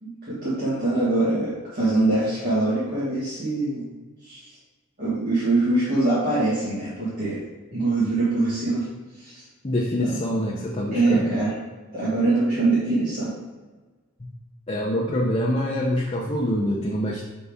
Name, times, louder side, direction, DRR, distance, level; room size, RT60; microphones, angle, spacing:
voice 1, 0.0-3.8 4.2-4.4 5.0-7.4 7.7-8.9 9.2-9.4 10.0-10.2 10.9-11.5 11.9-13.3, right 2 dB, 45° right, -10 dB, 1.7 m, -23 dB
voice 2, 9.6-11.3 14.2-14.3 14.7-17.2, equal, 30° left, -3 dB, 0.6 m, -25 dB
6.8 x 4.1 x 3.5 m, 1.3 s
head